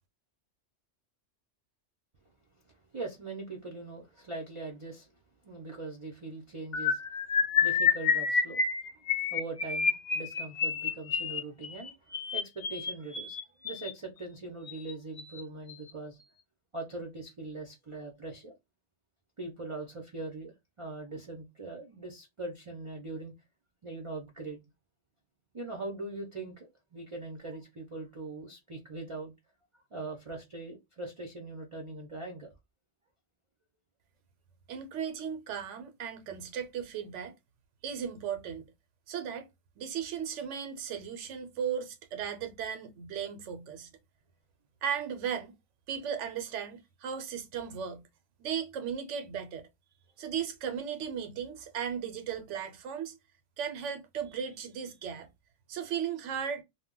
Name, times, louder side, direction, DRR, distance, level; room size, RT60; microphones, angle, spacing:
voice 1, 2.9-5.1 5.4-7.0 7.6-8.6 9.0-11.9 12.3-13.4 13.6-16.2 16.7-18.5 19.4-23.3 23.8-24.6 25.5-29.3 29.9-32.5, right 2 dB, 40° right, 0.4 m, -41 dB
sound 1, 6.7-13.9 14.7-14.9 15.2-15.4 15.7-15.9, left 6 dB, 50° left, 0.6 m, -29 dB
voice 2, 34.7-37.3 37.8-38.6 39.1-39.5 39.8-43.9 44.8-45.5 45.9-48.0 48.4-49.7 50.2-53.2 53.6-55.3 55.7-56.6, right 8 dB, 85° right, 0.9 m, -36 dB
2.2 x 2.0 x 3.6 m
omnidirectional pair, 1.2 m